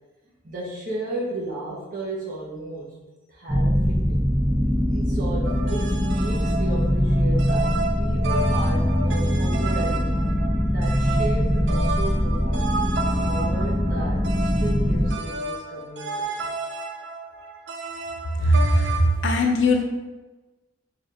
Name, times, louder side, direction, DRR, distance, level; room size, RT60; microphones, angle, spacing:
voice 1, 0.4-2.9 3.3-4.2 4.9-10.1 10.6-16.5, right 2 dB, 50° right, -4 dB, 1.1 m, -34 dB
sound 1, 3.5-15.1, equal, 10° right, 0.9 m, -22 dB
sound 2, 5.4-19.1, right 3 dB, 70° right, 0.4 m, -32 dB
voice 2, 18.4-19.8, equal, 85° left, 3 dB, 0.6 m, -19 dB
3.9 x 2.7 x 3.2 m, 1.2 s
head